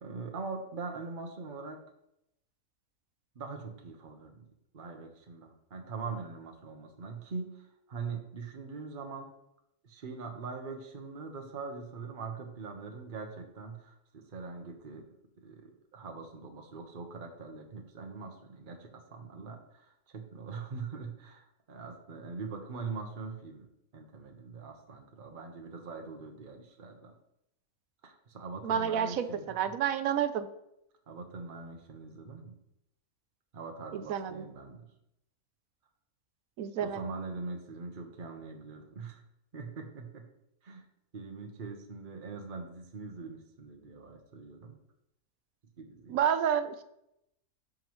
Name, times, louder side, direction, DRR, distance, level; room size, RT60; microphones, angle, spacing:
voice 1, 0.0-1.8 3.3-4.5 4.7-9.3 9.8-15.1 15.4-23.7 23.9-27.1 28.0-29.7 31.1-32.5 33.5-34.9 36.8-39.2 39.5-40.3 40.6-40.8 41.1-44.8 45.8-46.2, right 4 dB, 40° right, 3 dB, 1.1 m, -42 dB
voice 2, 28.6-30.5 33.9-34.5 36.6-37.1 46.1-46.8, right 8 dB, 80° right, 12 dB, 1.1 m, -30 dB
12.5 x 5.3 x 3.1 m, 0.82 s
omnidirectional pair, 1.5 m